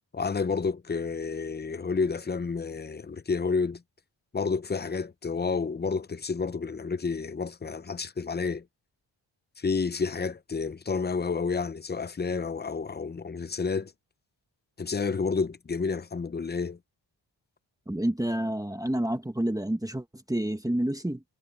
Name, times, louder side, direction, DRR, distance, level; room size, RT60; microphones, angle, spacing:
voice 1, 0.1-3.8 4.3-8.6 9.6-13.9 14.8-16.8, left 4 dB, 20° left, 0.6 m, -30 dB
voice 2, 17.9-21.2, right 1 dB, 10° right, 1.4 m, -29 dB
wide cardioid pair, 125°, 46 cm